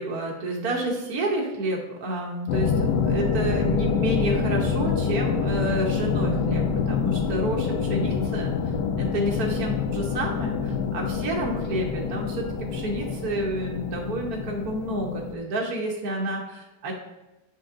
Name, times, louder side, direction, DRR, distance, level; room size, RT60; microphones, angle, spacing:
voice 1, 0.0-16.9, right 1 dB, 60° right, -1 dB, 1.4 m, -30 dB
sound 1, 2.5-15.3, left 5 dB, 85° left, 1.3 m, -26 dB
7.8 x 5.5 x 2.5 m, 1.0 s
omnidirectional pair, 1.9 m